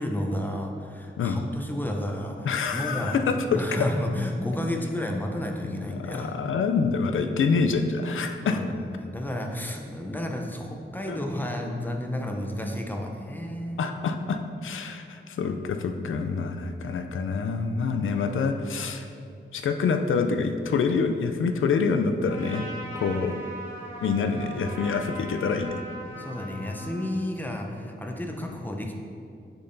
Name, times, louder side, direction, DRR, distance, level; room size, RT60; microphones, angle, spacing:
voice 1, 0.0-3.1 3.5-6.4 8.4-8.7 9.0-13.9 26.2-29.0, left 1 dB, 10° left, 1 dB, 0.6 m, -31 dB
voice 2, 2.5-3.9 5.7-8.6 11.1-11.2 13.8-19.1 19.5-22.7 22.9-23.4 24.0-25.8 28.5-28.6, left 5 dB, 90° left, 6 dB, 0.4 m, -26 dB
Trumpet, 22.3-27.2, right 1 dB, 10° right, 1.4 m, -39 dB
6.6 x 5.9 x 2.6 m, 2.4 s
wide cardioid pair, 105°, 20 cm